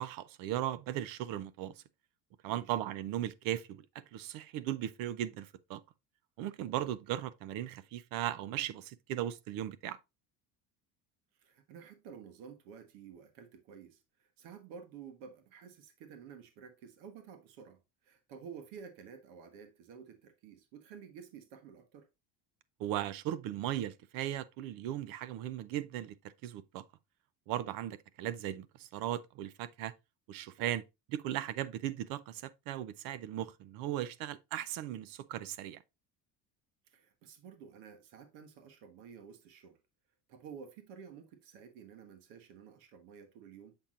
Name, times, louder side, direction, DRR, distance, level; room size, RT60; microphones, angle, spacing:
voice 1, 0.0-1.7 2.4-5.8 6.4-10.0 22.8-26.2 26.4-26.8 27.5-29.9 30.3-30.8 31.1-35.8, right 12 dB, 60° right, 0.6 m, -37 dB
voice 2, 11.4-22.1 30.6-30.8 36.9-39.8 40.3-43.7, right 7 dB, 80° right, 1.3 m, -52 dB
7.0 x 5.8 x 2.4 m
cardioid pair, 155°, 40 cm